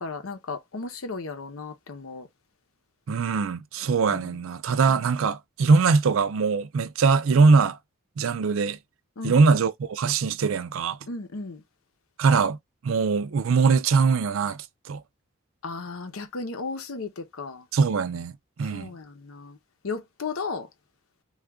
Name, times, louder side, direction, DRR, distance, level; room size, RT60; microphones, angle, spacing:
voice 1, 0.0-2.3 4.1-4.3 4.9-5.1 9.2-9.4 11.1-11.6 15.6-17.7 18.7-19.6 19.8-20.7, left 4 dB, 85° left, 0.8 m, -35 dB
voice 2, 3.1-7.8 8.2-8.8 9.2-11.0 12.2-12.6 12.8-14.6 14.9-15.0 17.7-18.9, right 4 dB, 75° right, 0.4 m, -22 dB
3.5 x 2.4 x 3.5 m
head